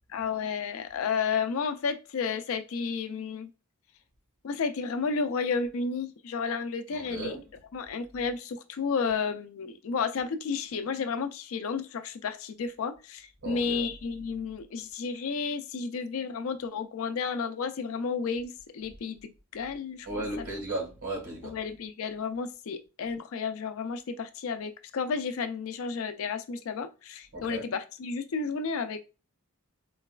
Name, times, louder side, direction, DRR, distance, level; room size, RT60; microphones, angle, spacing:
voice 1, 0.1-3.5 4.4-7.4 7.7-20.1 20.4-20.5 21.4-29.0, left 5 dB, 70° left, 0.4 m, -32 dB
voice 2, 6.9-7.4 13.4-13.9 20.0-21.6 27.3-27.7, right 2 dB, 80° right, 1.4 m, -35 dB
3.9 x 2.2 x 2.3 m
head